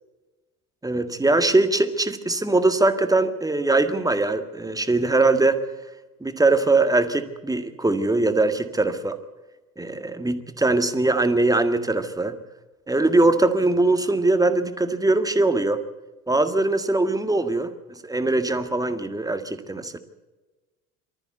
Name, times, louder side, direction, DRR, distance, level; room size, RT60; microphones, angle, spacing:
voice 1, 0.8-5.6 6.2-9.2 9.8-12.4 12.9-15.8 16.3-20.0, right 2 dB, 10° right, 9 dB, 1.8 m, -21 dB
23.5 x 14.0 x 8.2 m, 1.2 s
figure-of-eight pair, 60°, 44 cm